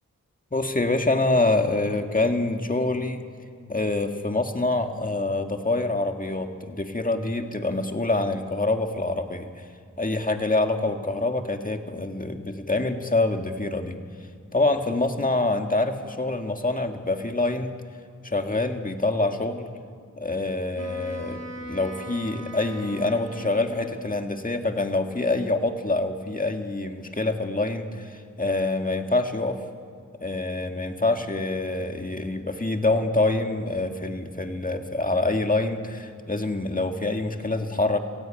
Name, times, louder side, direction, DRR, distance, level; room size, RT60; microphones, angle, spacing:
voice 1, 0.5-3.2 3.7-9.6 10.0-14.0 14.5-17.7 18.2-19.7 20.2-29.6 30.2-38.0, left 2 dB, 25° left, 5 dB, 1.9 m, -26 dB
Wind instrument woodwind instrument, 20.7-24.3, right 2 dB, 55° right, 3.8 m, -41 dB
27.5 x 15.5 x 9.0 m, 2.2 s
wide cardioid pair, 60°, 31 cm